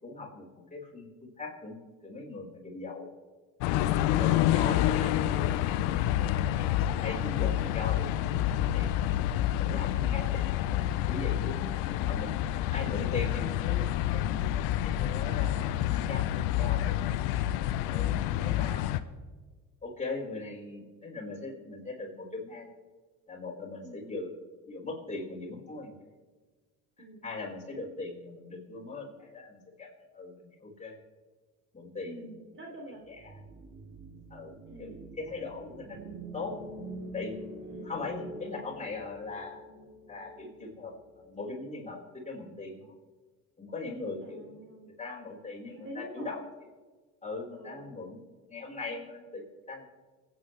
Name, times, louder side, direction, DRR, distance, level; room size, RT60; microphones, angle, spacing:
voice 1, 0.0-3.1 3.9-6.0 6.9-10.4 10.7-11.5 12.1-12.3 12.7-14.5 15.0-17.1 17.8-19.0 19.8-22.7 23.3-24.3 24.7-26.0 27.2-31.0 31.7-32.3 33.1-33.4 34.3-36.5 37.1-37.3 37.8-39.6 40.1-42.0 42.2-42.9 43.6-44.6 45.0-46.4 47.2-48.2 48.5-49.8, left 3 dB, 20° left, -3 dB, 4.7 m, -40 dB
sound 1, 3.6-19.0, left 12 dB, 75° left, 0.7 m, -28 dB
voice 2, 11.7-12.2 18.2-18.6 23.8-24.1 27.0-27.3 32.0-33.0 34.7-35.0 37.7-37.9 44.2-44.9 45.7-46.3 47.6-47.8, right 1 dB, 30° right, 1 dB, 3.3 m, -47 dB
sound 2, 33.0-41.4, right 1 dB, 60° right, 5.6 m, -45 dB
28.0 x 9.6 x 3.3 m, 1.4 s
hypercardioid pair, 70°, 37 cm